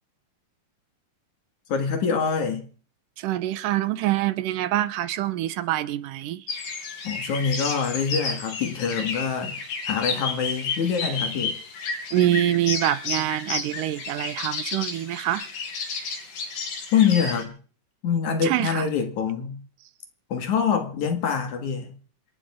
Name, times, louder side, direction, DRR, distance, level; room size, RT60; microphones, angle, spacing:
voice 1, 1.7-2.6 7.0-9.5 9.9-11.6 16.9-17.5 18.0-19.6 20.3-21.9, left 6 dB, 65° left, 3.2 m, -25 dB
voice 2, 3.2-6.4 12.1-15.5 18.4-18.9, right 13 dB, 85° right, 2.5 m, -25 dB
sound 1, 6.5-17.4, left 4 dB, 85° left, 4.3 m, -32 dB
26.5 x 11.5 x 3.7 m
omnidirectional pair, 3.7 m